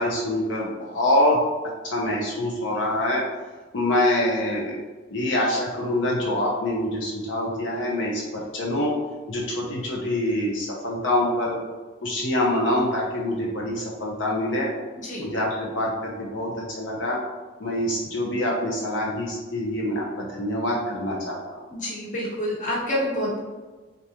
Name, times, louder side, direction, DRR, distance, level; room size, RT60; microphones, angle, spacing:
voice 1, 0.0-1.4 1.8-3.2 3.7-4.8 5.1-8.9 9.3-11.6 12.0-14.7 15.2-17.2 17.6-21.6, left 1 dB, 80° left, -3 dB, 0.7 m, -25 dB
voice 2, 21.7-23.4, left 1 dB, 40° left, -4 dB, 1.1 m, -27 dB
3.9 x 3.5 x 2.8 m, 1.3 s
head